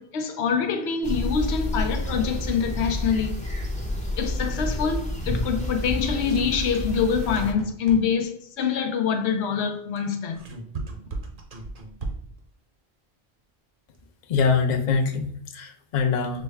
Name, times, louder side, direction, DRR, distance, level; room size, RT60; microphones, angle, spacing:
voice 1, 0.0-3.4 4.2-10.4, left 6 dB, 85° left, 0.9 m, -25 dB
sound 1, 1.0-7.5, left 1 dB, 10° left, 0.5 m, -29 dB
sound 2, 5.9-8.3 10.0-12.4, right 3 dB, 55° right, 0.9 m, -37 dB
voice 2, 14.3-16.4, left 5 dB, 50° left, 0.6 m, -24 dB
6.3 x 2.1 x 3.4 m
omnidirectional pair, 1.1 m